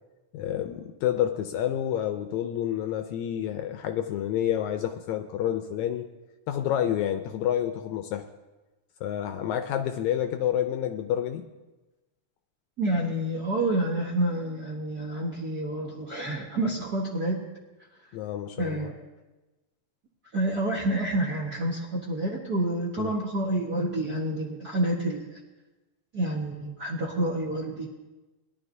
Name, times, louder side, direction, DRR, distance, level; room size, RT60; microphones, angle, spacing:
voice 1, 0.3-6.1 6.5-8.3 9.0-11.5 18.1-18.9 23.0-23.1, left 10 dB, 80° left, 7 dB, 1.7 m, -29 dB
voice 2, 12.8-17.4 18.6-18.9 20.3-25.4 26.1-27.9, right 1 dB, 55° right, -4 dB, 1.1 m, -28 dB
21.0 x 11.5 x 2.7 m, 1.1 s
omnidirectional pair, 3.6 m